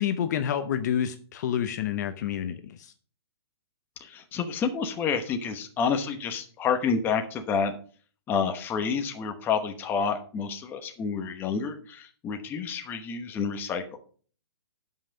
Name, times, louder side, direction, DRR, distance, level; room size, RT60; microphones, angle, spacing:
voice 1, 0.0-2.9, left 9 dB, 40° left, 10 dB, 0.8 m, -28 dB
voice 2, 4.0-7.7 8.3-14.0, left 6 dB, 15° left, 6 dB, 1.0 m, -29 dB
11.5 x 5.8 x 5.0 m, 0.43 s
hypercardioid pair, 160°, 14 cm